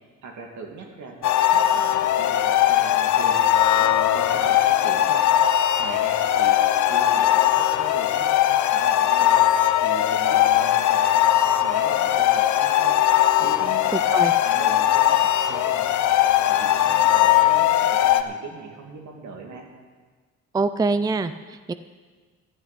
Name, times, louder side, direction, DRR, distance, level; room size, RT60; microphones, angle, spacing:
voice 1, 0.2-5.2 5.8-8.4 8.7-9.4 9.8-16.1 16.5-19.7, right 4 dB, 70° right, 2 dB, 2.4 m, -40 dB
sound 1, 1.2-18.2, left 12 dB, 70° left, 0.7 m, -19 dB
voice 2, 20.5-21.7, right 3 dB, 15° right, 12 dB, 0.4 m, -24 dB
12.5 x 6.7 x 9.6 m, 1.4 s
cardioid pair, 90°, 30 cm